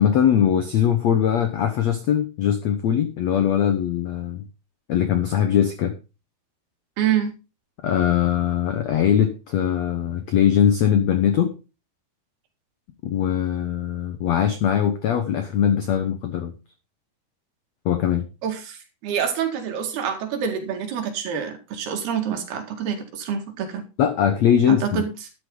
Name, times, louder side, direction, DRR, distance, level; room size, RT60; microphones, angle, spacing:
voice 1, 0.0-4.4 4.9-5.9 7.8-11.5 13.0-16.5 17.8-18.2 24.0-25.0, left 9 dB, 80° left, 9 dB, 1.5 m, -21 dB
voice 2, 7.0-7.3 18.4-23.8 24.7-25.1, right 8 dB, 70° right, 4 dB, 4.0 m, -27 dB
12.5 x 10.0 x 3.9 m, 0.30 s
omnidirectional pair, 4.7 m